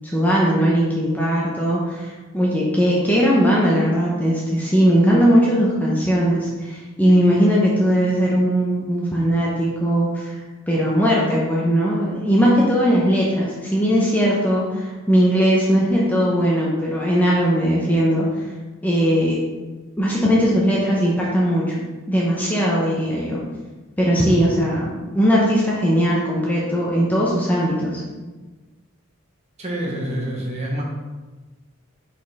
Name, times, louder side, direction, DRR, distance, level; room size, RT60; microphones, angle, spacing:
voice 1, 0.0-10.3 10.7-18.3 18.8-19.4 20.0-21.8 22.1-23.4 24.0-28.0, equal, 10° left, -5 dB, 0.8 m, -19 dB
voice 2, 29.6-30.8, right 1 dB, 30° right, -2 dB, 1.1 m, -27 dB
5.4 x 4.2 x 4.1 m, 1.3 s
head